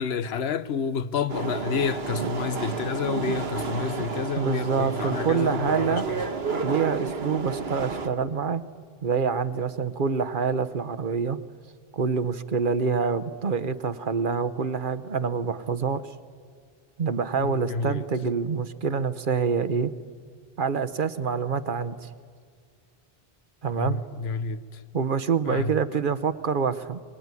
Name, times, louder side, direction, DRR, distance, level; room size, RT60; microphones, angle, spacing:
voice 1, 0.0-6.2 17.4-18.0 23.8-24.8 25.4-25.8, left 5 dB, 80° left, 1.1 m, -29 dB
sound 1, 1.3-8.1, right 5 dB, 80° right, 1.6 m, -31 dB
voice 2, 4.4-6.1 6.6-8.6 9.0-11.4 11.9-16.0 17.0-19.9 20.6-22.1 23.6-24.0 24.9-27.0, right 5 dB, 55° right, 1.0 m, -26 dB
23.5 x 20.0 x 9.6 m
omnidirectional pair, 1.0 m